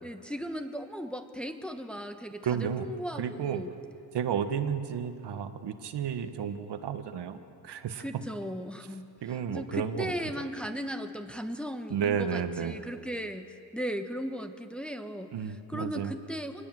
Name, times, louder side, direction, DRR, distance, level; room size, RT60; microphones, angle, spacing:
voice 1, 0.0-3.7 8.0-9.1 9.5-13.5 13.7-15.3 15.7-16.7, equal, ahead, 5 dB, 1.1 m, -37 dB
voice 2, 2.4-2.9 3.1-3.6 4.1-8.0 9.2-10.5 11.9-12.8 15.3-16.1, right 7 dB, 65° right, 8 dB, 1.6 m, -32 dB
25.5 x 20.0 x 7.8 m, 2.5 s
cardioid pair, 130°, 43 cm